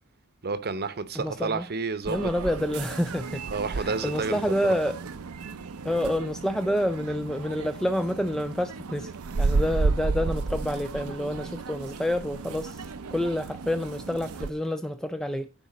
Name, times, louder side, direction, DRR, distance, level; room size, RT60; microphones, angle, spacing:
voice 1, 0.4-2.3 3.5-4.4, right 4 dB, 50° right, 0.8 m, -30 dB
voice 2, 1.1-1.7 2.1-3.4 3.7-5.0 5.8-9.1 9.4-15.5, equal, 5° left, 0.3 m, -28 dB
sound 1, 2.1-14.5, right 3 dB, 75° right, 0.6 m, -32 dB
9.7 x 4.0 x 6.1 m
head